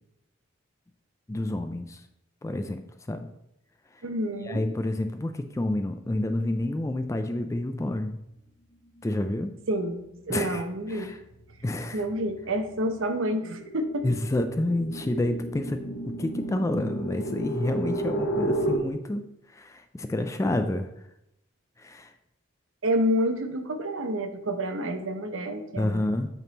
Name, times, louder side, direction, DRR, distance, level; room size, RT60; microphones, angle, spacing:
voice 1, 1.3-2.0 2.4-3.3 4.5-8.2 9.0-9.5 10.3-10.6 10.9-11.2 11.6-12.0 14.0-15.8 16.2-19.2 19.5-20.9 21.8-22.1 25.8-26.3, left 1 dB, 15° left, 8 dB, 0.3 m, -29 dB
voice 2, 4.0-4.6 9.7-11.1 11.9-14.1 22.8-26.0, equal, 80° right, 7 dB, 0.7 m, -28 dB
sound 1, 9.9-18.8, right 1 dB, 85° left, 0.9 m, -33 dB
8.2 x 3.6 x 4.0 m, 0.83 s
head